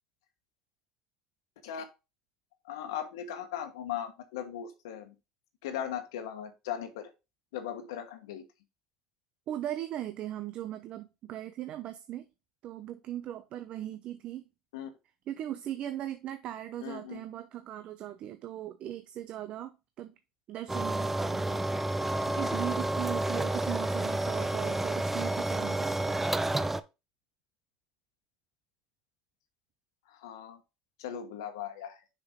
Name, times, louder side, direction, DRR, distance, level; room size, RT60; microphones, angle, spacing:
voice 1, 2.6-5.1 5.6-7.1 7.5-8.4 14.7-14.9 16.8-17.3 30.1-30.6 31.0-32.0, left 9 dB, 80° left, 1.3 m, -38 dB
voice 2, 9.5-12.3 12.6-14.5 15.3-20.1 20.5-21.6 22.0-26.2, right 12 dB, 55° right, 0.7 m, -39 dB
sound 1, 20.7-26.8, right 1 dB, 10° right, 0.6 m, -30 dB
6.5 x 5.9 x 3.7 m
hypercardioid pair, 80°, 2 cm